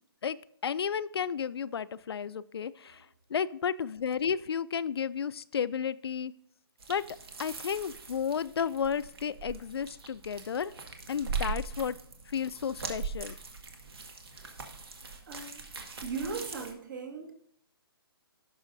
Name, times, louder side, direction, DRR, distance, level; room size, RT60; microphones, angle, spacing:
voice 1, 0.6-3.0 3.3-6.3 6.9-7.0 7.4-10.7 11.1-12.0 12.3-13.3, left 7 dB, 75° left, 17 dB, 0.4 m, -32 dB
sound 1, 6.8-16.7, right 5 dB, 75° right, 1.9 m, -41 dB
voice 2, 15.3-15.6 16.0-17.3, right 5 dB, 50° right, 4 dB, 1.8 m, -38 dB
17.0 x 6.3 x 2.6 m, 0.70 s
hypercardioid pair, 160°, 13 cm